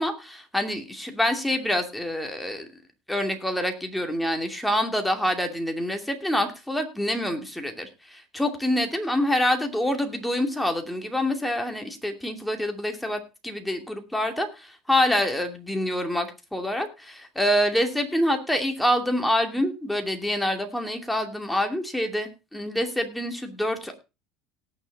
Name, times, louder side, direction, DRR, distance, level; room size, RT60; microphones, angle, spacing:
voice 1, 0.0-2.7 3.1-23.9, left 1 dB, 5° left, 4 dB, 2.6 m, -26 dB
18.5 x 6.5 x 4.1 m, 0.28 s
supercardioid pair, 125°, 0 cm